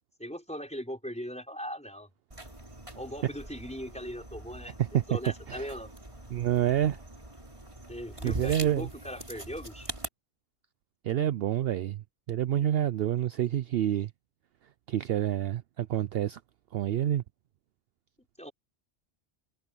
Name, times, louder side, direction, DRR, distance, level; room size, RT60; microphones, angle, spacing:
voice 1, 0.2-2.1 2.9-5.9 7.9-9.9 18.4-18.5, equal, 5° left, 5.0 m, -39 dB
sound 1, 2.3-10.1, right 1 dB, 25° right, 3.1 m, -43 dB
voice 2, 4.8-5.2 5.5-5.7 6.3-7.0 8.2-8.9 11.0-12.0 12.3-14.1 14.9-16.4 16.7-17.2, right 11 dB, 65° right, 0.7 m, -28 dB
omnidirectional pair, 1.2 m